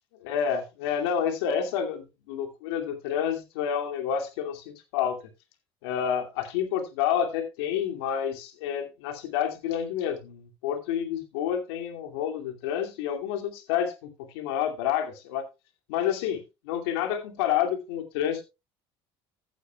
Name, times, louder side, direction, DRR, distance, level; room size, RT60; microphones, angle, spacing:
voice 1, 0.2-5.2 5.8-14.1 14.3-15.4 15.9-18.4, left 9 dB, 85° left, 2.5 m, -29 dB
15.0 x 9.1 x 2.3 m
supercardioid pair, 90°, 13 cm